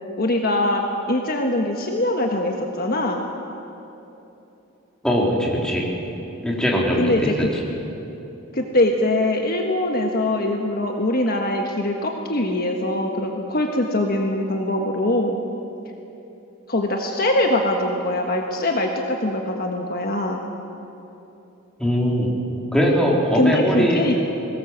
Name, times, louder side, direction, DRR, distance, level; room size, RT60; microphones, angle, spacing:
voice 1, 0.2-0.8 1.1-3.2 7.0-7.5 8.5-15.4 16.7-20.4 23.3-24.2, left 1 dB, 45° left, 2 dB, 1.4 m, -22 dB
voice 2, 5.0-5.9 6.4-7.6 21.8-22.3 22.7-24.1, equal, 5° left, -3 dB, 3.4 m, -20 dB
22.0 x 18.5 x 7.4 m, 3.0 s
head